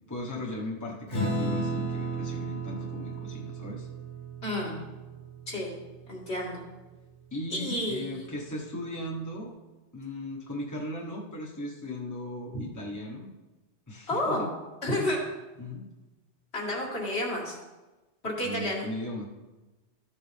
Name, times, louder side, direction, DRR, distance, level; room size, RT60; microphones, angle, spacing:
voice 1, 0.1-3.9 7.3-9.5 9.9-13.3 13.9-14.5 15.6-15.9 18.4-19.2, left 1 dB, 15° left, -3 dB, 1.3 m, -37 dB
Acoustic guitar / Strum, 1.1-5.9, right 2 dB, 85° left, 4.3 m, -34 dB
voice 2, 4.4-4.8 5.5-5.7 6.1-6.6 7.5-8.2 14.1-14.5 14.8-15.2 16.5-17.6 18.2-18.9, left 1 dB, 65° left, -4 dB, 2.7 m, -30 dB
13.5 x 7.1 x 3.4 m, 1.1 s
omnidirectional pair, 1.2 m